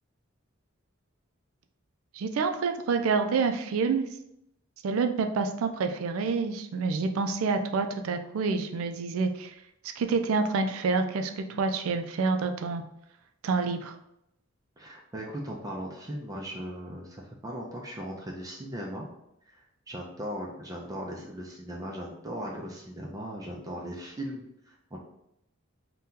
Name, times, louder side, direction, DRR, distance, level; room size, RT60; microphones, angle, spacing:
voice 1, 2.1-4.1 4.8-9.5 10.0-12.8 13.4-13.9, right 4 dB, 85° right, 6 dB, 0.4 m, -28 dB
voice 2, 14.8-19.1 19.5-19.6 19.9-25.0, equal, 15° right, -2 dB, 0.4 m, -38 dB
2.7 x 2.2 x 3.6 m, 0.80 s
head